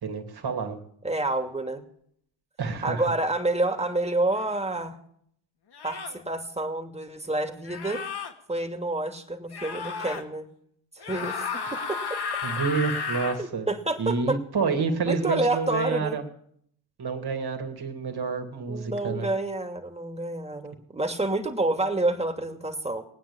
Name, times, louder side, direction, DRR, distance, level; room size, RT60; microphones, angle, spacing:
voice 1, 0.0-0.8 2.6-3.1 12.4-13.7 14.0-16.2 17.0-19.3, right 5 dB, 50° right, 4 dB, 2.8 m, -28 dB
voice 2, 1.0-1.8 2.8-5.0 5.8-8.0 8.5-10.5 10.9-12.2 13.4-14.4 15.1-16.2 18.7-23.0, right 2 dB, 15° right, 5 dB, 2.5 m, -28 dB
sound 1, 4.4-4.5 5.7-6.2 7.6-8.3 9.5-10.2 11.0-13.4, left 5 dB, 55° left, 2.1 m, -33 dB
20.0 x 9.2 x 7.1 m, 0.69 s
hypercardioid pair, 45°, 48 cm